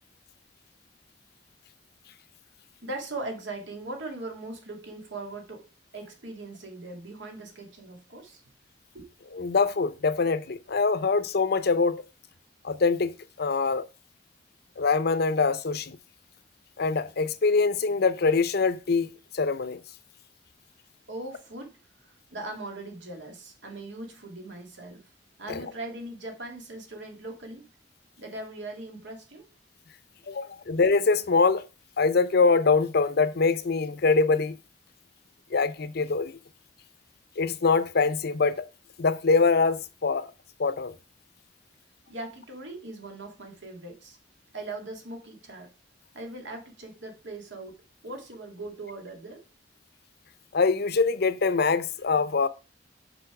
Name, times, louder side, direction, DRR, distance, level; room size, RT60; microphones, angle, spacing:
voice 1, 2.8-5.7 5.9-8.4 8.9-9.1 21.1-25.1 25.4-27.7 28.2-29.5 30.2-30.5 42.1-44.2 44.5-45.7 46.1-49.4, right 2 dB, 80° right, 2.1 m, -40 dB
voice 2, 9.3-12.0 12.6-13.1 13.4-13.8 14.8-16.0 16.8-19.8 25.5-25.6 30.3-31.6 32.0-34.6 35.5-36.4 37.4-38.6 39.0-40.3 40.6-40.9 50.5-52.5, left 4 dB, 60° left, 0.6 m, -24 dB
6.9 x 5.3 x 4.8 m
head